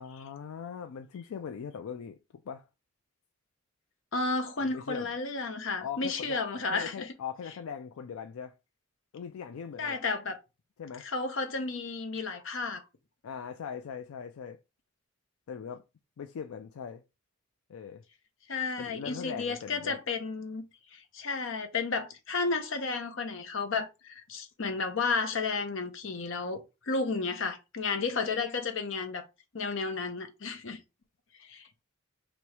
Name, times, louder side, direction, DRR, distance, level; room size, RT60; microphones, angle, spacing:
voice 1, 0.0-2.2 2.4-2.7 4.7-5.1 5.8-6.4 6.7-8.5 9.1-10.0 10.8-11.1 13.2-14.6 15.5-15.8 16.2-17.0 17.7-18.0 18.8-20.0, left 7 dB, 85° left, 0.4 m, -40 dB
voice 2, 4.1-7.1 9.8-10.4 11.0-12.8 18.5-20.6 20.9-29.3 29.5-30.8 31.4-31.7, left 4 dB, 65° left, 0.8 m, -32 dB
3.1 x 3.0 x 4.6 m
head